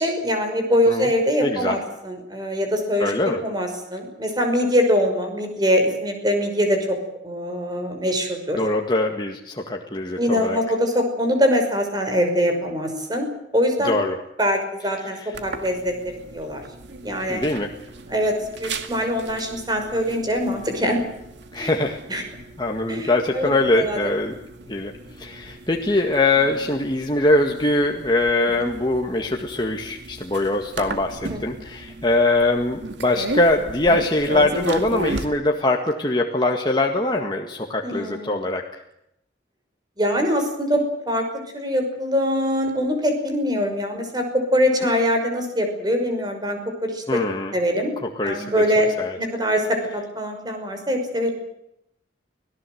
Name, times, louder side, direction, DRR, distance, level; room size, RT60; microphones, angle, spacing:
voice 1, 0.0-7.0 7.2-8.6 10.2-13.3 13.5-14.0 14.4-15.2 15.4-16.6 17.0-17.5 18.1-21.0 21.6-21.7 22.1-22.2 22.9-24.0 28.6-28.7 31.3-31.4 37.8-38.3 40.0-41.2 41.5-47.2 47.5-47.9 48.2-48.9 49.2-51.3, equal, 20° right, 5 dB, 5.7 m, -23 dB
voice 2, 1.4-1.8 3.0-3.4 8.6-10.6 13.8-14.2 15.2-15.3 17.3-17.7 21.5-22.0 22.6-24.4 24.7-24.9 25.2-38.6 47.1-47.5 48.2-48.6 49.0-49.2, left 2 dB, 25° left, 2 dB, 1.8 m, -22 dB
sound 1, 15.3-35.3, right 2 dB, 75° right, 2.2 m, -36 dB
26.0 x 17.5 x 8.0 m, 0.80 s
head